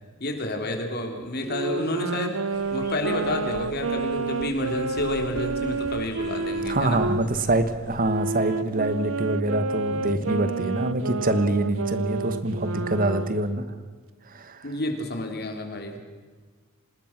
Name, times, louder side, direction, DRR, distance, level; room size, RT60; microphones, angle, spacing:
voice 1, 0.2-7.1 14.6-16.0, left 1 dB, 50° left, 4 dB, 3.5 m, -30 dB
Wind instrument woodwind instrument, 1.4-7.2 8.0-13.4, right 4 dB, 75° right, 0.8 m, -30 dB
sound 1, 2.5-8.2, equal, 20° left, 6.1 m, -45 dB
voice 2, 6.6-13.6 14.3-14.6, right 1 dB, 40° right, 11 dB, 1.4 m, -25 dB
26.0 x 20.0 x 6.0 m, 1.5 s
head